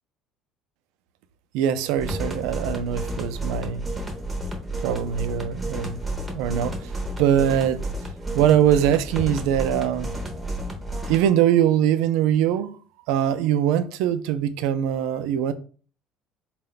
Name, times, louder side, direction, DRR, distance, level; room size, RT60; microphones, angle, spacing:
voice 1, 1.5-3.8 4.8-6.0 6.3-6.8 7.2-7.8 8.3-10.1 11.0-12.8 13.1-15.5, right 10 dB, 80° right, 0.3 m, -22 dB
sound 1, 2.0-11.2, right 1 dB, 10° right, 0.6 m, -31 dB
4.1 x 2.2 x 3.8 m
cardioid pair, 165°, 0 cm